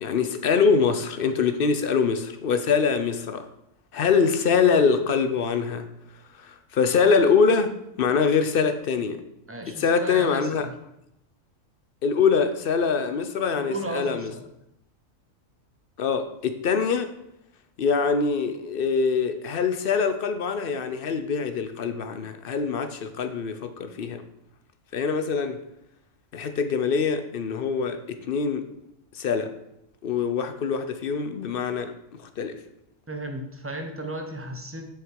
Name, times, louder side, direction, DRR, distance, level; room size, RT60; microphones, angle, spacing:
voice 1, 0.0-3.5 3.9-5.9 6.3-9.2 9.7-10.7 12.0-14.3 16.0-17.1 17.8-24.2 24.9-25.6 26.3-28.7 29.1-29.5 30.0-31.9 32.2-32.6, left 5 dB, 55° left, 0.7 m, -24 dB
voice 2, 9.5-10.7 13.6-14.4 33.1-34.9, right 1 dB, 10° right, 0.8 m, -35 dB
6.5 x 6.5 x 4.6 m
omnidirectional pair, 1.4 m